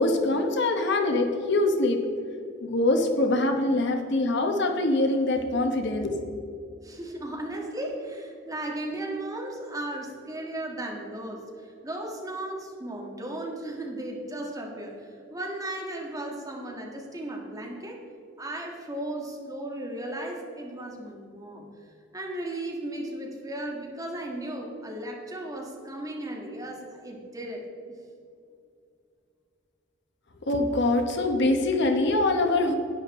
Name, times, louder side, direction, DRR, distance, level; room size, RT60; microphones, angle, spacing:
voice 1, 0.0-2.0 2.6-6.2 30.5-32.7, left 2 dB, 65° left, 5 dB, 1.1 m, -24 dB
voice 2, 6.8-18.0 18.4-21.7 22.1-27.6, right 1 dB, 20° right, 0 dB, 1.7 m, -36 dB
11.0 x 9.3 x 4.2 m, 2.5 s
head